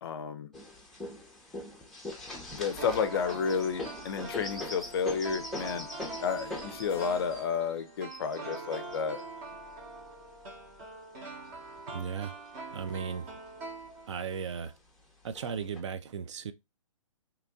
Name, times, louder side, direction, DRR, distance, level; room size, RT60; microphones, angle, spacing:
voice 1, 0.0-0.5 2.5-5.9 6.2-9.2, left 6 dB, 45° left, 0.4 m, -31 dB
sound 1, 0.5-10.8 11.5-12.4 12.8-12.9 13.2-13.9 14.6-14.7 15.4-15.8, left 2 dB, ahead, 0.6 m, -42 dB
sound 2, 2.8-14.4 14.7-14.8, right 3 dB, 30° right, 0.9 m, -44 dB
Keyboard (musical), 6.9-9.4 10.0-11.2, left 6 dB, 25° left, 0.9 m, -54 dB
voice 2, 11.9-12.4 12.7-13.3 14.1-14.7 15.2-16.5, right 6 dB, 55° right, 0.4 m, -36 dB
2.9 x 2.5 x 3.4 m
hypercardioid pair, 140°, 18 cm